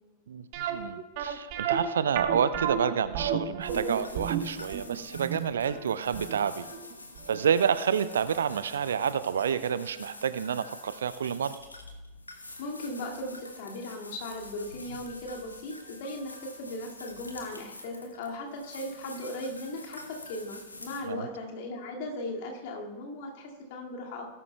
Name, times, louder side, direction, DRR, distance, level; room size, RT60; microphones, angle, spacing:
voice 1, 0.3-6.7 7.3-11.5 21.0-21.3, right 7 dB, 65° right, 14 dB, 0.5 m, -29 dB
sound 1, 0.5-7.4 7.7-7.8 8.3-8.5 8.7-8.8, right 8 dB, 45° right, 1.1 m, -32 dB
sound 2, 3.6-21.0, left 2 dB, 80° left, 1.0 m, -47 dB
voice 2, 12.6-24.3, left 1 dB, 50° left, 0 dB, 2.1 m, -38 dB
18.5 x 11.0 x 2.3 m, 1.1 s
figure-of-eight pair, 90°, 0 cm